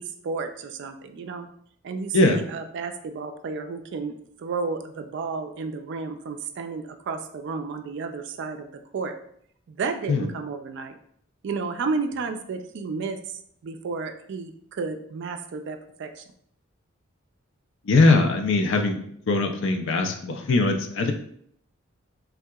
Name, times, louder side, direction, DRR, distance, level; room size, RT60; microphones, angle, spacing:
voice 1, 0.0-1.5 1.8-9.1 9.7-10.9 11.4-16.2, right 4 dB, 60° right, 7 dB, 0.3 m, -32 dB
voice 2, 2.1-2.4 10.1-10.3 17.9-19.0 19.3-21.1, left 3 dB, 65° left, 5 dB, 0.4 m, -21 dB
3.4 x 2.8 x 2.3 m, 0.66 s
head